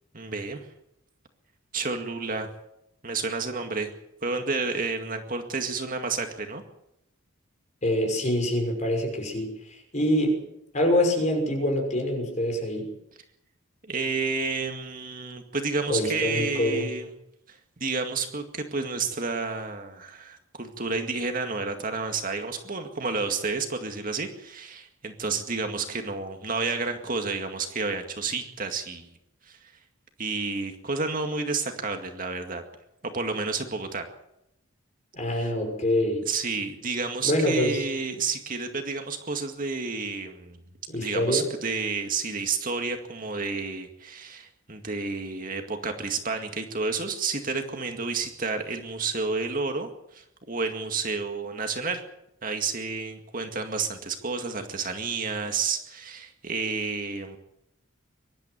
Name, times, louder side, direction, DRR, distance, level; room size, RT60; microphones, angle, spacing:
voice 1, 0.1-0.7 1.7-2.5 3.0-3.9 4.2-6.6 13.9-17.1 17.5-29.1 29.5-29.7 30.2-32.6 33.0-34.0 35.4-35.5 36.3-40.6 40.9-52.0 52.4-57.4, right 4 dB, 40° right, 5 dB, 2.1 m, -30 dB
voice 2, 7.8-9.5 9.9-10.4 10.7-12.9 15.9-16.9 35.1-36.3 37.2-37.8 40.9-41.5, left 1 dB, 35° left, 2 dB, 6.0 m, -25 dB
23.5 x 12.0 x 9.6 m, 0.82 s
head